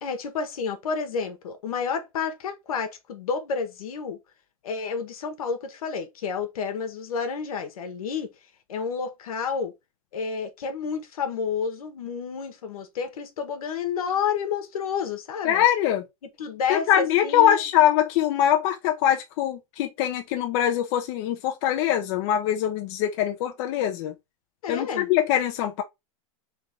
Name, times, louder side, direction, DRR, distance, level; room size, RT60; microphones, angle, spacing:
voice 1, 0.0-4.2 4.6-8.3 8.7-9.7 10.1-15.6 16.4-17.6 24.6-25.1, left 6 dB, 85° left, 1.3 m, -30 dB
voice 2, 15.4-16.0 16.7-24.1 24.7-25.8, left 11 dB, 55° left, 0.7 m, -23 dB
3.7 x 3.5 x 3.5 m
supercardioid pair, 130°, 18 cm